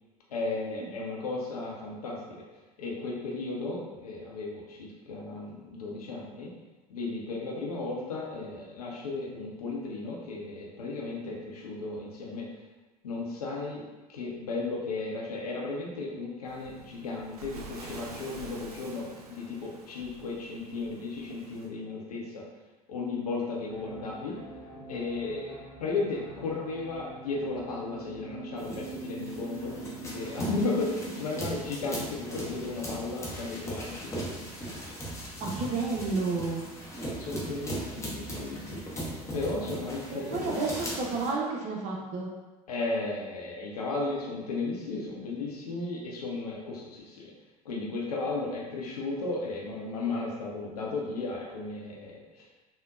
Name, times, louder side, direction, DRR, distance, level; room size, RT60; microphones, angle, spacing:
voice 1, 0.3-2.4 2.8-6.5 6.9-12.5 13.0-22.4 22.9-24.4 24.9-29.8 30.0-34.1 37.2-40.7 42.7-47.3 47.6-52.5, left 3 dB, 75° left, -2 dB, 0.6 m, -35 dB
Waves surf, 16.5-21.7, right 3 dB, 80° right, 0.4 m, -47 dB
sound 1, 23.6-31.6, right 4 dB, 10° right, 1.3 m, -45 dB
sound 2, 28.6-41.3, right 1 dB, 15° left, 0.7 m, -38 dB
voice 2, 35.4-36.6 38.0-38.1 40.1-42.3, right 3 dB, 35° right, -2 dB, 0.7 m, -31 dB
3.8 x 2.1 x 2.4 m, 1.2 s
figure-of-eight pair, 70°, 20 cm